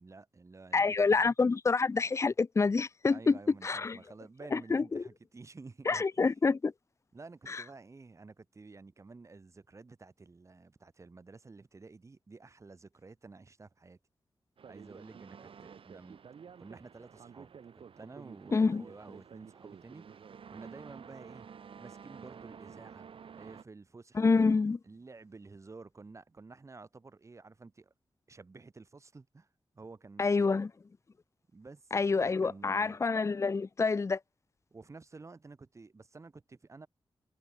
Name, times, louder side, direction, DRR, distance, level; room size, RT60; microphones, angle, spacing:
voice 1, 0.0-1.3 3.1-6.3 7.1-14.0 14.7-16.2 16.6-20.0 20.5-21.5 21.8-23.1 23.3-24.4 24.8-27.9 28.3-29.5 29.7-30.6 31.5-33.0 34.7-36.9, right 3 dB, 35° right, 5.1 m, -51 dB
voice 2, 0.7-4.0 4.5-5.0 5.9-6.7 7.5-7.6 18.5-18.8 24.1-24.8 30.2-30.7 31.9-34.2, left 4 dB, 35° left, 0.7 m, -27 dB
sound 1, 14.6-23.6, right 7 dB, 90° right, 2.5 m, -51 dB
wide cardioid pair, 155°, 9 cm